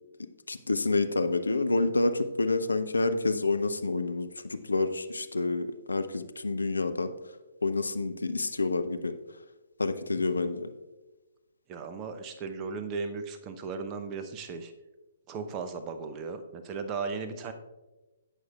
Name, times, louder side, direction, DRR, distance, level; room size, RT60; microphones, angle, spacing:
voice 1, 0.5-7.1 7.6-9.1 9.8-10.7, left 3 dB, 75° left, 9 dB, 0.6 m, -28 dB
voice 2, 10.2-10.5 11.7-14.7 15.3-17.5, right 4 dB, 25° right, 8 dB, 0.7 m, -36 dB
17.0 x 6.3 x 2.4 m, 1.1 s
figure-of-eight pair, 125°, 0 cm